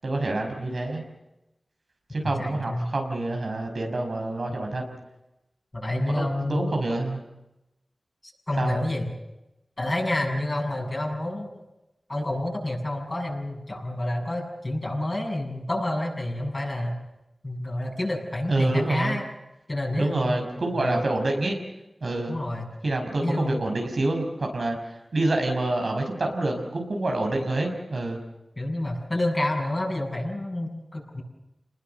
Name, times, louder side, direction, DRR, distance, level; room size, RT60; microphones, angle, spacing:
voice 1, 0.0-1.0 2.1-5.0 6.0-7.2 8.6-8.8 18.5-19.2 20.0-21.6 22.0-22.4 22.8-28.2, right 2 dB, 75° right, 2 dB, 5.5 m, -27 dB
voice 2, 2.2-2.9 5.7-6.7 8.5-9.1 9.8-11.5 12.1-17.0 17.4-19.2 19.7-21.0 22.3-22.7 23.2-23.6 28.6-31.2, left 1 dB, 40° left, 1 dB, 7.2 m, -29 dB
28.0 x 20.5 x 6.9 m, 0.94 s
wide cardioid pair, 45°, 0 cm